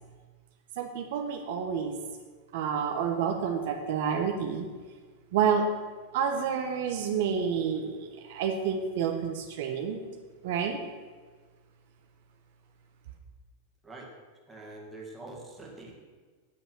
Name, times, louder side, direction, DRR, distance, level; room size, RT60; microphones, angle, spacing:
voice 1, 0.8-2.0 2.5-4.7 5.3-5.6 6.1-10.0 10.4-10.8, right 7 dB, 60° right, 4 dB, 1.1 m, -29 dB
voice 2, 14.5-15.9, right 2 dB, 10° right, -3 dB, 2.0 m, -44 dB
8.9 x 8.0 x 6.2 m, 1.5 s
supercardioid pair, 160°, 0 cm